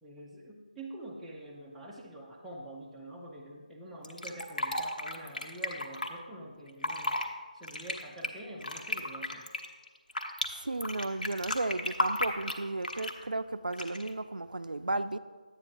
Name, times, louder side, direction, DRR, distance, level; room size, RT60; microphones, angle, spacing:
voice 1, 0.0-7.2 7.5-9.5, right 1 dB, ahead, 0.4 m, -46 dB
Fill (with liquid), 4.0-6.1 6.7-7.3 7.6-10.5 10.8-13.2 13.7-14.1, left 1 dB, 75° left, 1.0 m, -34 dB
voice 2, 10.5-15.2, right 2 dB, 75° right, 0.4 m, -34 dB
10.5 x 8.8 x 2.6 m
figure-of-eight pair, 165°, 5 cm